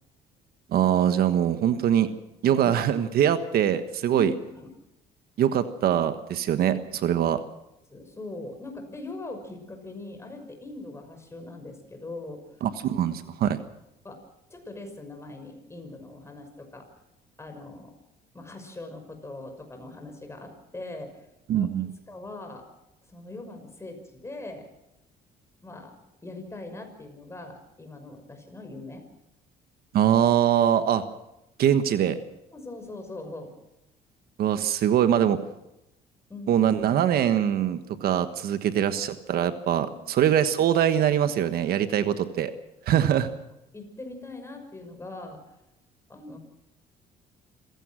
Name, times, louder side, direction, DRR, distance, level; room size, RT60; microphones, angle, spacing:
voice 1, 0.7-2.1 2.4-4.3 5.4-7.4 12.6-13.6 21.5-21.9 29.9-31.0 31.6-32.2 34.4-35.4 36.5-42.5 42.9-43.3, right 10 dB, 65° right, 10 dB, 1.3 m, -23 dB
voice 2, 4.1-4.7 6.7-6.8 7.9-12.4 13.0-13.1 14.0-14.2 14.5-16.9 17.4-17.9 18.3-21.1 21.5-22.6 23.1-24.7 25.6-25.9 26.2-29.0 32.5-33.5 36.3-36.6 39.9-40.0 42.9-43.0 43.7-45.4 46.1-46.4, left 2 dB, 15° left, 5 dB, 6.0 m, -41 dB
26.5 x 16.5 x 6.3 m, 0.89 s
cardioid pair, 110°, 17 cm